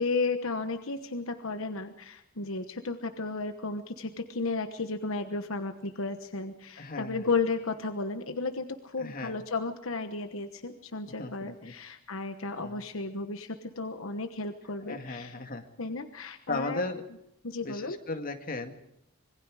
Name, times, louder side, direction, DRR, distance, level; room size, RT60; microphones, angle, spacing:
voice 1, 0.0-15.3 15.8-16.9 17.4-18.0, left 3 dB, 70° left, 7 dB, 1.2 m, -33 dB
voice 2, 6.8-7.3 9.0-9.4 11.2-11.7 12.6-12.8 14.9-15.7 16.5-17.0 17.6-18.7, left 3 dB, 45° left, 5 dB, 2.2 m, -36 dB
26.0 x 22.5 x 4.9 m, 0.81 s
head